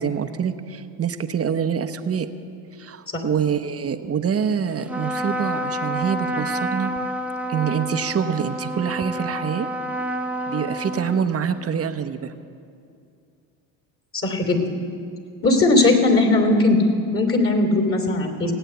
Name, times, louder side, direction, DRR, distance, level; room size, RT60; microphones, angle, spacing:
voice 1, 0.0-2.3 2.8-6.9 7.5-9.7 10.5-12.3, right 7 dB, 30° right, 8 dB, 1.0 m, -25 dB
Trumpet, 4.8-11.7, right 1 dB, 5° right, 1.0 m, -29 dB
voice 2, 14.1-14.6 15.4-16.8 17.1-18.5, left 2 dB, 30° left, 5 dB, 2.9 m, -18 dB
17.0 x 9.0 x 8.0 m, 2.4 s
supercardioid pair, 80°, 45 cm